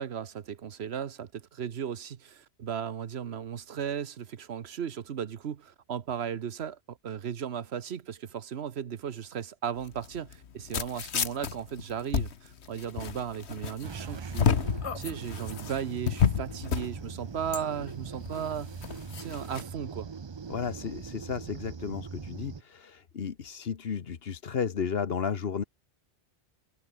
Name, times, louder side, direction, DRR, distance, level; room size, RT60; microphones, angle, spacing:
voice 1, 0.0-14.5 14.9-18.7 19.2-20.1, right 8 dB, 75° right, 1.2 m, -36 dB
sound 1, 9.8-19.6, left 7 dB, 90° left, 1.4 m, -31 dB
sound 2, 13.8-22.6, right 5 dB, 35° right, 0.5 m, -41 dB
voice 2, 20.5-25.6, left 6 dB, 65° left, 1.3 m, -33 dB
omnidirectional pair, 1.1 m